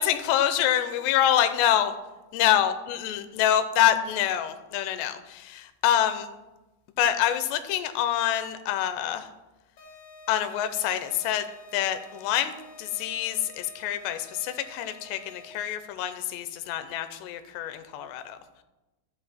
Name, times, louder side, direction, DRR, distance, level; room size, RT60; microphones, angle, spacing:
voice 1, 0.0-1.9 2.3-6.3 7.0-9.3 10.3-11.5 11.7-12.5 12.8-18.4, left 11 dB, 85° left, 9 dB, 2.9 m, -26 dB
sound 1, 9.8-15.7, left 1 dB, 65° left, 1.5 m, -49 dB
13.0 x 8.2 x 4.3 m, 1.1 s
omnidirectional pair, 4.9 m